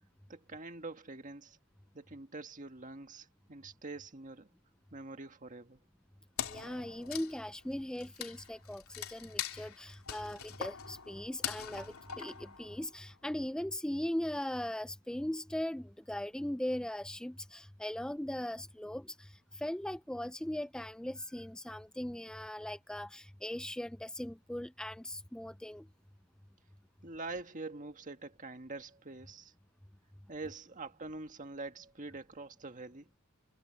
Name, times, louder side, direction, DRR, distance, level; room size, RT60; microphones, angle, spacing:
voice 1, 0.3-1.6 1.9-4.5 4.9-5.8 27.0-29.5 30.3-33.1, right 3 dB, 35° right, 1.7 m, -45 dB
Wood, 6.4-13.1, left 9 dB, 75° left, 2.9 m, -43 dB
voice 2, 6.4-25.9, left 1 dB, 5° left, 0.3 m, -39 dB
head